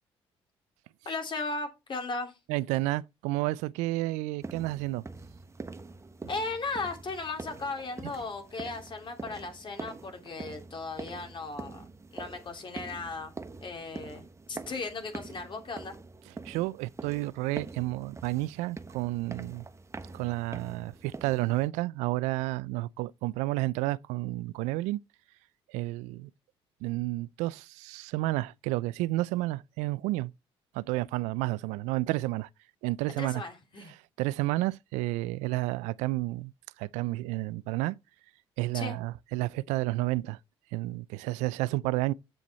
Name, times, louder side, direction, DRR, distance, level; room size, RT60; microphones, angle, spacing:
voice 1, 1.0-2.3 6.3-11.8 12.1-13.3 13.6-15.9 33.2-33.9 38.7-39.0, left 3 dB, 45° left, 3.0 m, -36 dB
voice 2, 2.5-5.0 16.4-19.6 20.1-25.0 25.7-26.3 26.8-30.3 30.7-32.5 32.8-33.4 33.9-36.5 36.8-38.0 38.6-40.4 40.7-42.1, right 19 dB, 85° right, 0.4 m, -31 dB
sound 1, 4.4-21.7, right 3 dB, 25° right, 1.1 m, -45 dB
7.8 x 7.2 x 4.2 m
supercardioid pair, 70°, 12 cm